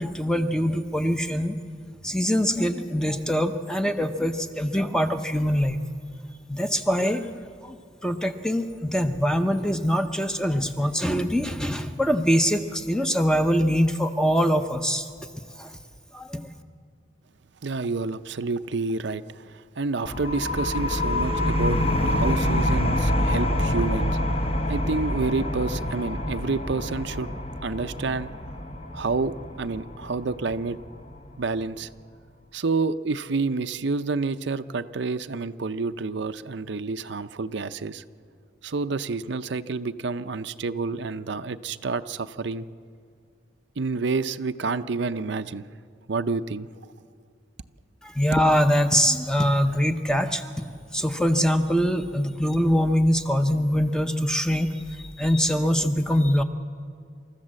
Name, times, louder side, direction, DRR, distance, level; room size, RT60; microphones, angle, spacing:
voice 1, 0.0-1.6 2.0-5.8 6.5-15.1 15.6-15.7 16.1-16.5 48.0-56.4, equal, 5° left, 7 dB, 0.7 m, -23 dB
voice 2, 17.6-27.3 27.6-28.3 28.9-30.8 31.4-31.9 32.5-38.0 38.6-42.7 43.8-45.7 46.1-46.7, right 3 dB, 60° right, 10 dB, 0.6 m, -29 dB
sound 1, 20.0-31.4, left 1 dB, 30° left, 1.0 m, -26 dB
27.5 x 14.0 x 7.5 m, 2.3 s
head